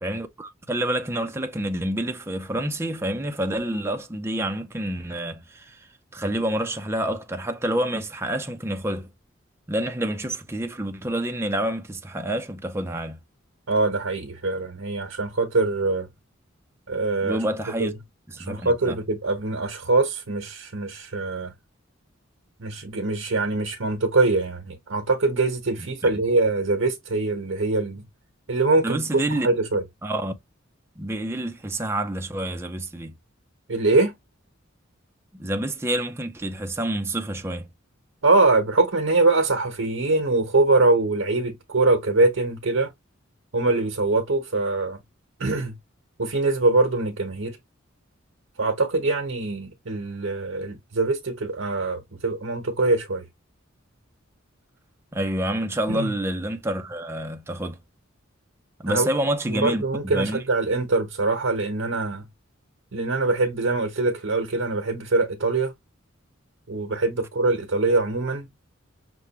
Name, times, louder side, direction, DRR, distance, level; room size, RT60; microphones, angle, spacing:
voice 1, 0.0-5.9 6.1-9.1 9.7-13.2 17.2-17.9 18.3-19.0 28.8-29.5 30.0-30.3 31.0-33.1 35.3-37.7 55.1-57.8 58.8-59.8 60.1-60.4, right 1 dB, 15° right, 0.5 m, -28 dB
voice 2, 13.7-16.1 16.9-17.4 17.8-17.9 18.4-21.5 22.6-28.0 28.5-29.8 33.7-34.1 38.2-42.9 43.5-45.0 45.4-45.7 46.2-47.6 48.6-53.2 55.9-56.1 58.9-59.1 59.5-62.3 62.9-65.7 66.7-68.5, right 3 dB, 70° right, 0.9 m, -23 dB
6.0 x 2.2 x 2.8 m
head